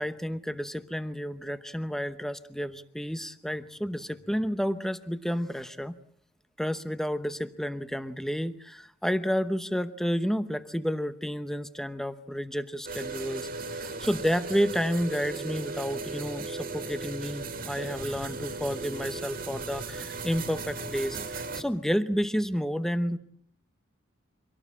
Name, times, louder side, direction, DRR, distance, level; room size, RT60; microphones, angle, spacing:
voice 1, 0.0-5.9 6.6-23.2, equal, ahead, 12 dB, 0.9 m, -31 dB
sound 1, 12.8-21.6, right 3 dB, 45° right, 2.3 m, -37 dB
25.5 x 18.0 x 8.6 m, 0.67 s
head